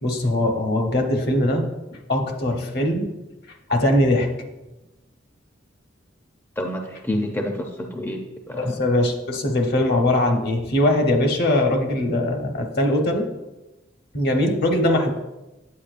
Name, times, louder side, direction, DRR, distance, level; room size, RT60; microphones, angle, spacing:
voice 1, 0.0-1.7 2.1-3.1 3.7-4.3 8.6-13.3 14.1-15.1, left 1 dB, 55° left, 3 dB, 1.0 m, -21 dB
voice 2, 6.6-8.8, left 1 dB, 10° left, 2 dB, 0.5 m, -28 dB
8.5 x 8.5 x 2.5 m, 1.0 s
head